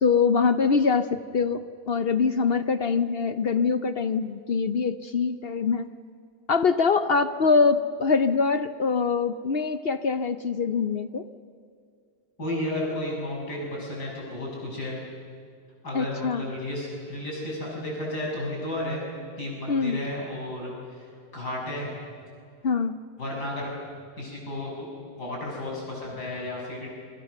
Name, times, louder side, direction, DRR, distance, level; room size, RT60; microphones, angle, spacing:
voice 1, 0.0-5.9 6.5-11.2 15.9-16.4 19.7-20.0 22.6-23.0, left 5 dB, 55° left, 12 dB, 0.7 m, -24 dB
voice 2, 12.4-15.0 15.8-19.0 19.4-21.9 23.2-23.7 24.2-24.9 25.2-26.9, left 1 dB, 70° left, -2 dB, 7.6 m, -33 dB
28.0 x 23.5 x 6.7 m, 2.2 s
omnidirectional pair, 1.8 m